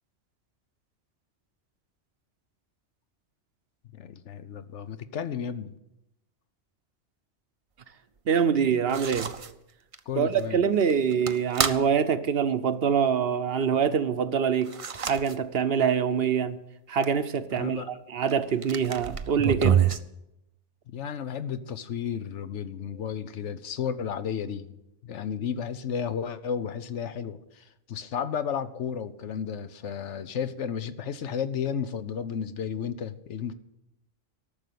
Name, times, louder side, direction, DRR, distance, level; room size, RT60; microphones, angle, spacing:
voice 1, 3.9-5.7 10.1-10.6 17.5-17.9 20.9-24.7 25.0-33.5, left 7 dB, 80° left, 1.1 m, -33 dB
voice 2, 8.3-9.3 10.2-14.7 15.0-16.6 16.9-19.8, right 7 dB, 60° right, 0.9 m, -25 dB
sound 1, 8.9-9.5 9.9-10.0 10.4-10.5 10.8-11.8 14.6-15.4 15.8-15.9 17.0-17.1 18.3-18.4 18.6-20.0, right 8 dB, 40° right, 0.5 m, -27 dB
13.5 x 6.5 x 9.3 m
omnidirectional pair, 1.2 m